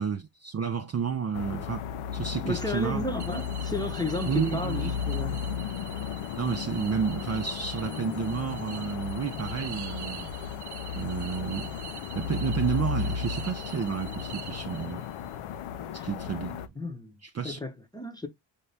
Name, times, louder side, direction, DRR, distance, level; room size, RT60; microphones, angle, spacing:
voice 1, 0.0-3.0 4.3-5.0 6.4-10.4 10.9-11.8 12.1-15.0 16.0-16.6 17.3-17.6, right 6 dB, 35° right, 0.5 m, -31 dB
sound 1, 1.3-16.7, left 7 dB, 80° left, 0.6 m, -34 dB
voice 2, 2.4-5.4 16.0-16.1 16.8-17.2 17.4-18.3, left 2 dB, 10° left, 0.8 m, -33 dB
sound 2, 3.2-15.2, right 9 dB, 50° right, 0.8 m, -45 dB
Bass guitar, 7.8-11.3, left 5 dB, 65° left, 1.1 m, -46 dB
4.7 x 2.7 x 3.3 m
cardioid pair, 100°, 50 cm